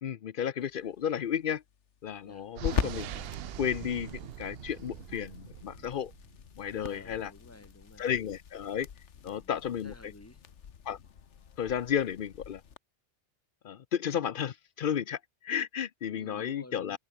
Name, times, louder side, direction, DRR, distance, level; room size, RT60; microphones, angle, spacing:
voice 1, 0.0-1.6 2.0-3.2 3.6-6.1 6.6-7.3 8.0-8.9 9.2-10.1 10.9-11.0 11.6-12.6 13.6-17.0, left 9 dB, 55° left, 0.7 m, -33 dB
sound 1, 0.6-12.8, left 7 dB, 75° left, 1.4 m, -42 dB
sound 2, 2.6-6.4, right 12 dB, 65° right, 0.7 m, -42 dB
voice 2, 6.7-8.1 9.3-10.4 16.1-17.0, left 2 dB, 10° left, 2.1 m, -52 dB
omnidirectional pair, 1.2 m